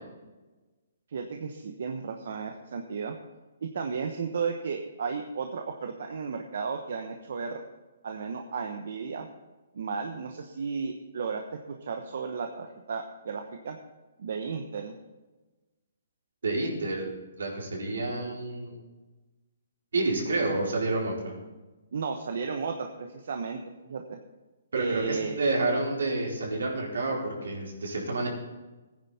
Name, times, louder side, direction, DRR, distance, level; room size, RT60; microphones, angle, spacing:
voice 1, 1.1-3.2 3.6-7.6 8.0-9.3 9.7-13.8 14.2-14.9 20.2-20.3 21.9-24.2 24.7-25.4, right 5 dB, 65° right, 4 dB, 1.1 m, -34 dB
voice 2, 16.4-17.1 17.4-18.8 19.9-21.3 24.7-28.3, right 2 dB, 85° right, -3 dB, 4.5 m, -29 dB
16.0 x 10.0 x 4.4 m, 1.2 s
hypercardioid pair, 155°, 0 cm